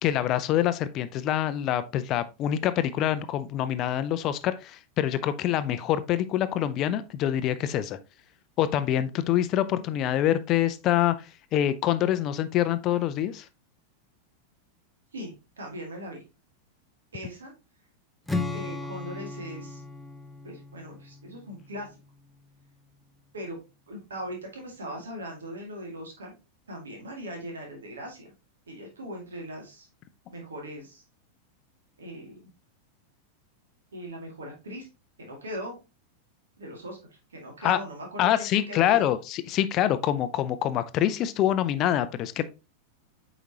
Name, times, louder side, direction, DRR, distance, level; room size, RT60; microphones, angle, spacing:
voice 1, 0.0-8.0 8.6-13.5 37.6-37.8 38.2-42.4, left 11 dB, 35° left, 13 dB, 0.5 m, -25 dB
voice 2, 15.1-16.2 17.1-17.5 18.5-19.8 20.4-21.9 23.3-23.6 23.9-26.3 26.7-28.3 28.7-29.9 30.3-31.0 32.0-32.5 33.9-34.9 35.2-35.8 36.6-37.0 37.3-39.1, equal, 70° right, 1 dB, 2.2 m, -39 dB
Strum, 18.3-22.4, left 3 dB, ahead, 0.8 m, -36 dB
8.0 x 5.0 x 2.9 m, 0.28 s
figure-of-eight pair, 90°, 0 cm